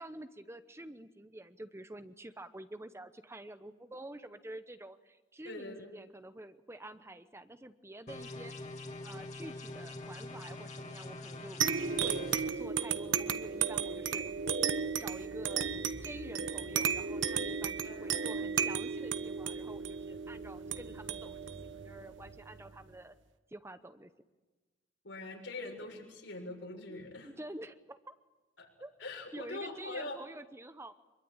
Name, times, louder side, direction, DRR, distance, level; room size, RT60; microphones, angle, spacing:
voice 1, 0.0-8.5 9.0-14.3 15.0-21.4 21.8-23.1 23.5-24.1 26.9-28.1 28.8-28.9 29.3-30.9, right 1 dB, 15° right, 11 dB, 0.9 m, -48 dB
voice 2, 5.4-5.9 17.8-18.3 25.0-27.3 28.6-28.7 29.0-30.2, left 2 dB, 85° left, 0 dB, 7.0 m, -43 dB
sound 1, 8.1-12.4, left 2 dB, 40° left, 2.8 m, -44 dB
sound 2, 11.6-22.7, right 7 dB, 85° right, 1.1 m, -34 dB
25.0 x 23.0 x 8.9 m, 1.2 s
head